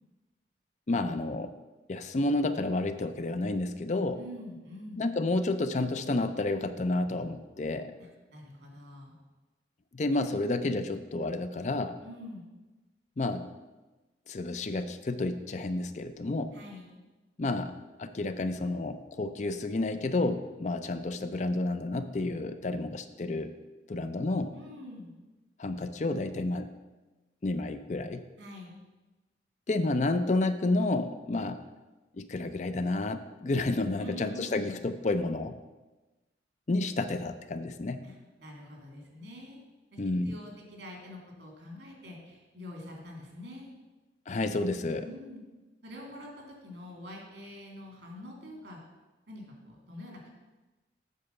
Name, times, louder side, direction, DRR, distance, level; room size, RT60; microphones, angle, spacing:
voice 1, 0.9-1.5 1.9-4.2 5.0-7.9 9.9-12.0 13.2-13.5 14.3-16.6 17.4-23.5 23.9-24.6 25.6-26.7 27.4-28.2 29.7-31.6 32.1-35.5 36.7-38.1 40.0-40.4 44.3-45.1, left 2 dB, 40° left, 10 dB, 0.5 m, -30 dB
voice 2, 4.1-5.0 8.0-9.2 12.0-12.5 16.5-16.9 24.5-25.1 28.4-28.8 34.0-34.8 38.0-39.6 39.9-43.7 45.0-45.4 45.8-48.8 49.3-50.3, left 1 dB, 80° right, 0 dB, 2.4 m, -46 dB
8.3 x 4.8 x 6.8 m, 1.2 s
head